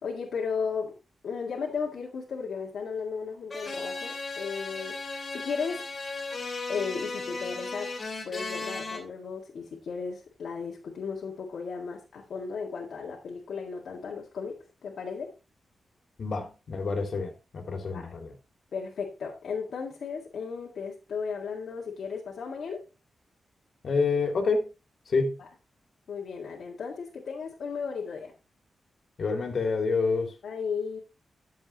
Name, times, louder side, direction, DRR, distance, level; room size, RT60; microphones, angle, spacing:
voice 1, 0.0-0.9 1.2-5.0 5.3-5.8 6.7-7.9 8.3-14.6 14.8-15.3 17.9-18.1 18.7-22.8 25.4-25.5 26.1-28.3 30.4-31.0, left 5 dB, 75° left, 2.0 m, -35 dB
sound 1, 3.5-9.0, left 3 dB, 35° left, 2.8 m, -36 dB
voice 2, 16.2-18.3 23.8-24.7 25.1-25.4 29.2-30.3, left 4 dB, 55° left, 2.7 m, -28 dB
11.5 x 7.3 x 3.0 m
wide cardioid pair, 125°, 0 cm